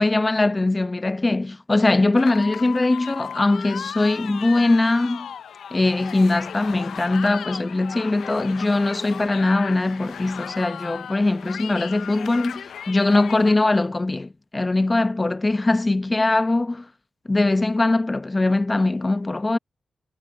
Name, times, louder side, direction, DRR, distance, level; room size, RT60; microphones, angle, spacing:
voice 1, 0.0-5.3 5.7-16.9 17.3-19.6, left 2 dB, 25° left, 0.8 m, -21 dB
sound 1, 2.2-13.5, left 8 dB, 80° left, 0.5 m, -36 dB
cardioid pair, 70°, 0 cm